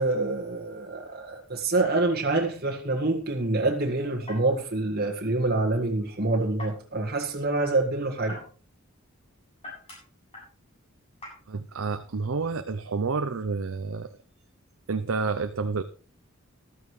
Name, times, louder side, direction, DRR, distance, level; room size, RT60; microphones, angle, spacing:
voice 1, 0.0-8.4, right 2 dB, 45° right, 0 dB, 1.7 m, -26 dB
sound 1, 3.9-14.7, left 1 dB, 30° left, 7.9 m, -49 dB
voice 2, 11.5-14.1 14.9-15.8, right 4 dB, 70° right, 9 dB, 0.7 m, -29 dB
14.0 x 13.0 x 3.2 m, 0.39 s
head